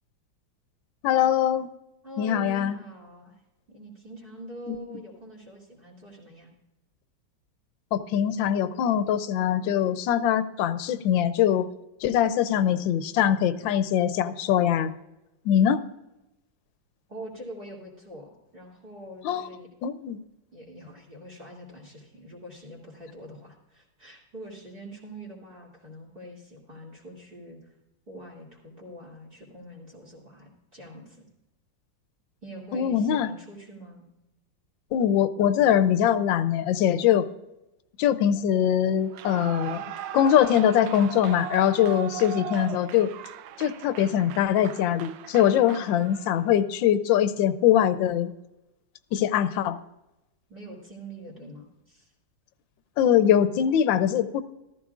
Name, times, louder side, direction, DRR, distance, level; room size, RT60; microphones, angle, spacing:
voice 1, 1.0-1.7 2.2-2.8 4.7-4.8 7.9-11.7 12.0-14.9 15.4-15.8 19.2-19.4 19.8-20.2 32.7-33.3 34.9-37.3 38.0-39.8 40.1-43.1 43.6-48.3 49.1-49.8 53.0-54.4, left 10 dB, 85° left, 13 dB, 1.3 m, -22 dB
voice 2, 2.0-3.4 3.7-6.5 17.1-19.7 20.5-27.7 28.1-31.2 32.4-34.1 45.6-45.9 50.5-52.1, right 1 dB, 30° right, -2 dB, 2.7 m, -44 dB
Clapping / Cheering / Applause, 39.1-46.5, right 10 dB, 80° right, 1.3 m, -39 dB
14.0 x 13.5 x 2.4 m, 0.93 s
omnidirectional pair, 2.0 m